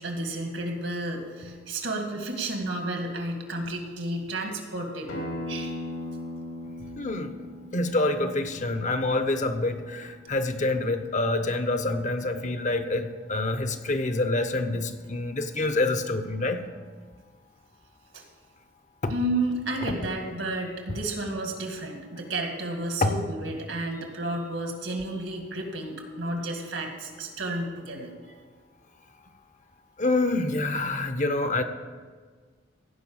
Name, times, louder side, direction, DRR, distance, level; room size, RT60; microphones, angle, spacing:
voice 1, 0.0-5.7 18.1-18.2 19.1-28.1, right 1 dB, 75° right, 3 dB, 2.1 m, -32 dB
Acoustic guitar, 5.1-10.3, left 1 dB, 85° left, 2.7 m, -39 dB
voice 2, 7.0-7.3 7.7-16.6 19.0-19.1 23.0-23.2 30.0-31.6, left 2 dB, 40° left, 8 dB, 0.8 m, -26 dB
16.0 x 5.4 x 7.2 m, 1.5 s
head